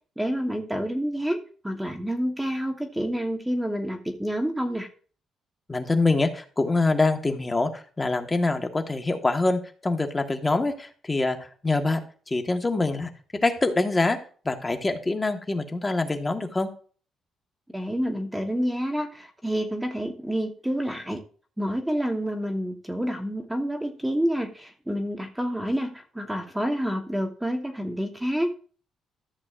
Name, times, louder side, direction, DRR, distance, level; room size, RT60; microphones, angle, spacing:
voice 1, 0.2-4.9 17.7-21.2 21.6-28.5, equal, 5° right, 4 dB, 1.1 m, -28 dB
voice 2, 5.7-13.1 13.4-14.2 14.4-16.7, left 2 dB, 20° left, 5 dB, 1.4 m, -25 dB
14.0 x 8.2 x 2.5 m, 0.42 s
cardioid pair, 90°, 0 cm